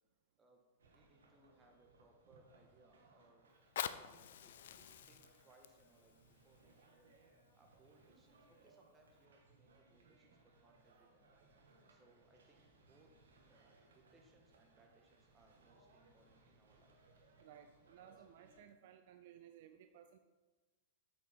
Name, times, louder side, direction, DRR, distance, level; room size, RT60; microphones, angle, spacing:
voice 1, 0.4-3.5 3.9-13.1 13.5-16.9 18.0-18.1, right 2 dB, 20° right, 1 dB, 1.8 m, -70 dB
sound 1, 0.8-18.6, right 3 dB, 75° right, 1.6 m, -68 dB
Fire, 3.5-8.5 9.1-9.2, left 10 dB, 65° left, 0.4 m, -48 dB
voice 2, 17.4-20.2, right 9 dB, 55° right, 7 dB, 0.5 m, -59 dB
8.1 x 6.8 x 4.4 m, 1.3 s
hypercardioid pair, 100°, 0 cm